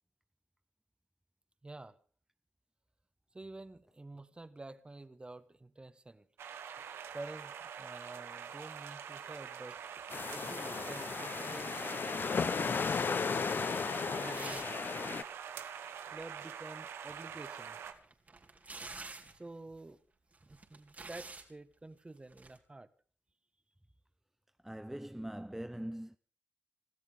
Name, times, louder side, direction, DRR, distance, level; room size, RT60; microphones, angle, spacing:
voice 1, 1.6-2.0 3.3-6.3 7.1-9.8 10.3-11.9 12.4-13.8 14.1-14.7 16.1-17.8 19.3-20.0 20.4-22.9, right 2 dB, 25° right, 1.6 m, -49 dB
sound 1, 6.4-17.9, right 8 dB, 90° right, 1.8 m, -45 dB
sound 2, 10.1-15.2, left 5 dB, 55° left, 1.0 m, -35 dB
sound 3, 14.3-14.9 15.1-15.2 17.6-19.4 20.3-21.5 22.3-22.6, right 3 dB, 40° right, 4.0 m, -47 dB
voice 2, 24.6-26.2, right 1 dB, 5° right, 0.8 m, -42 dB
27.0 x 13.5 x 3.7 m
cardioid pair, 60°, 4 cm